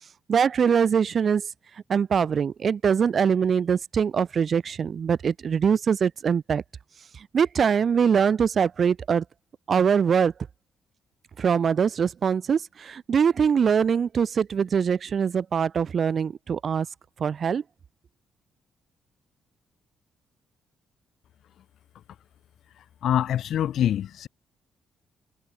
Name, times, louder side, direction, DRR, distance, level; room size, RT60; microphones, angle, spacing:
voice 1, 0.3-1.5 1.9-6.6 7.1-9.2 9.7-10.3 11.4-16.9 17.2-17.6, right 7 dB, 50° right, 3.9 m, -23 dB
voice 2, 23.0-24.3, left 10 dB, 70° left, 5.5 m, -24 dB
cardioid pair, 90°, 0 cm